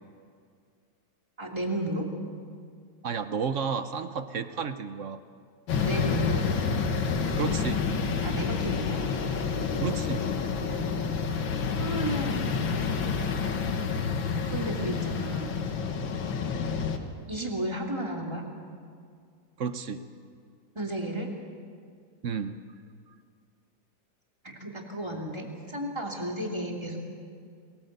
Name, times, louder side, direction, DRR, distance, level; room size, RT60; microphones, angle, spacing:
voice 1, 1.4-2.1 5.8-6.4 8.2-9.1 11.8-12.5 14.4-15.6 17.3-18.4 20.7-21.3 24.4-27.0, right 1 dB, 15° right, 0 dB, 2.7 m, -33 dB
voice 2, 3.0-5.2 7.4-7.8 9.8-10.2 19.6-20.0 22.2-22.6, right 6 dB, 55° right, 10 dB, 1.0 m, -31 dB
sound 1, 5.7-17.0, left 5 dB, 85° left, 2.2 m, -29 dB
22.0 x 19.0 x 8.1 m, 2.1 s
omnidirectional pair, 2.0 m